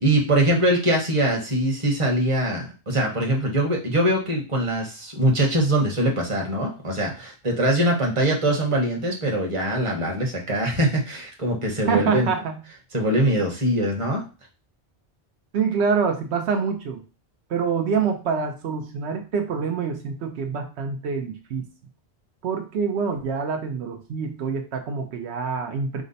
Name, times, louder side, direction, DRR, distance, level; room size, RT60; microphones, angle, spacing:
voice 1, 0.0-12.3 12.9-14.2, right 1 dB, 30° right, 0 dB, 1.0 m, -22 dB
voice 2, 11.9-12.6 15.5-17.0 17.5-21.7 22.4-26.0, right 5 dB, 80° right, 4 dB, 0.9 m, -26 dB
4.9 x 2.1 x 3.9 m, 0.33 s
omnidirectional pair, 1.1 m